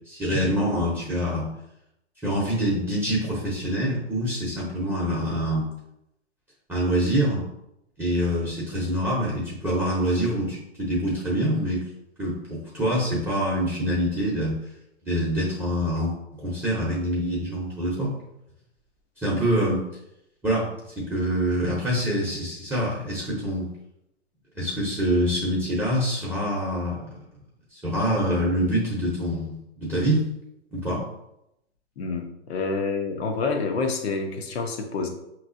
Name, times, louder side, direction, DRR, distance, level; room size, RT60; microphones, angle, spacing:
voice 1, 0.1-1.5 2.2-5.7 6.7-7.4 8.0-11.8 12.2-14.6 15.0-18.1 19.2-19.8 20.4-20.7 20.9-23.7 24.5-27.2 27.7-30.2 30.7-31.0, equal, 5° right, -7 dB, 1.0 m, -25 dB
voice 2, 32.0-35.1, left 4 dB, 60° left, 5 dB, 1.0 m, -28 dB
5.7 x 3.0 x 2.7 m, 0.83 s
hypercardioid pair, 135°, 35 cm